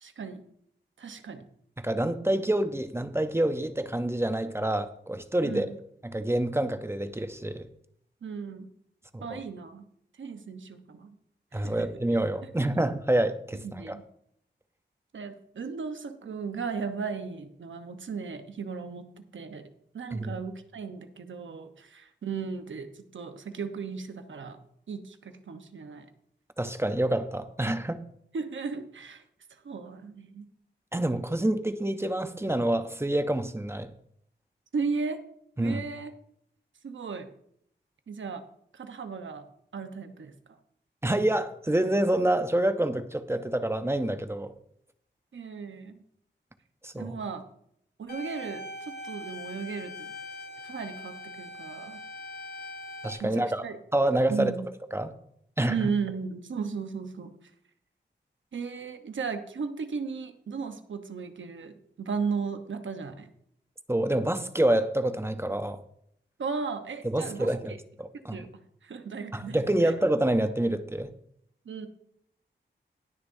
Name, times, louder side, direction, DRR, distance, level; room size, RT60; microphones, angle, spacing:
voice 1, 0.0-0.4 1.0-1.4 5.4-5.7 8.2-8.7 9.2-9.8 10.2-11.1 11.5-11.9 13.6-14.0 15.1-19.7 19.9-24.6 24.9-26.1 28.3-29.2 29.5-30.5 34.7-35.2 35.6-36.1 36.8-37.3 38.1-38.4 38.7-39.5 39.7-40.3 45.3-46.0 47.0-47.4 48.0-50.1 50.6-52.0 53.2-53.8 54.3-54.7 55.7-57.3 58.5-63.3 66.4-67.8 68.3-68.5 68.8-69.9 71.6-71.9, right 5 dB, 90° right, 7 dB, 1.0 m, -36 dB
voice 2, 1.8-5.7 6.0-7.7 9.1-9.4 11.5-14.0 20.1-20.3 26.6-28.0 30.9-33.9 35.6-35.8 41.0-44.5 46.8-47.2 53.0-53.6 53.9-54.5 54.9-55.1 55.6-55.8 63.9-65.8 67.0-68.4 69.3-71.1, right 1 dB, 15° right, 10 dB, 0.6 m, -27 dB
sound 1, 48.1-53.1, left 2 dB, 60° left, 3.0 m, -41 dB
19.0 x 6.6 x 2.7 m, 0.70 s
wide cardioid pair, 110°, 19 cm